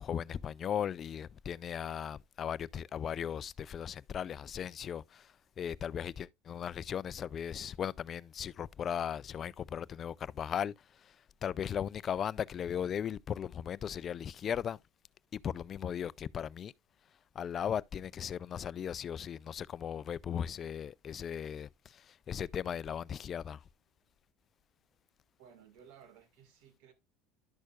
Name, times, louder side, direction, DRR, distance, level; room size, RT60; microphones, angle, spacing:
voice 1, 0.0-14.8 15.3-16.7 17.3-23.7, left 8 dB, 40° left, 0.4 m, -37 dB
voice 2, 25.4-26.9, right 8 dB, 70° right, 2.0 m, -57 dB
11.5 x 6.3 x 2.4 m
hypercardioid pair, 85°, 0 cm